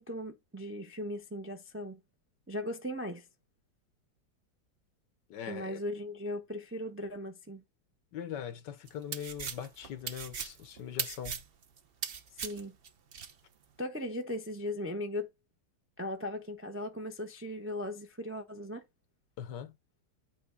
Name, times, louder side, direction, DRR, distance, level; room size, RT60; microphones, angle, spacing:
voice 1, 0.0-2.0 2.5-3.3 5.5-7.6 12.4-12.8 13.8-15.3 16.0-18.8, left 1 dB, 20° right, 0.4 m, -38 dB
voice 2, 5.3-5.8 8.1-11.4 19.4-19.8, left 9 dB, 80° left, 1.6 m, -41 dB
sound 1, 8.9-13.3, right 6 dB, 50° right, 0.7 m, -39 dB
8.5 x 3.5 x 3.8 m
omnidirectional pair, 1.9 m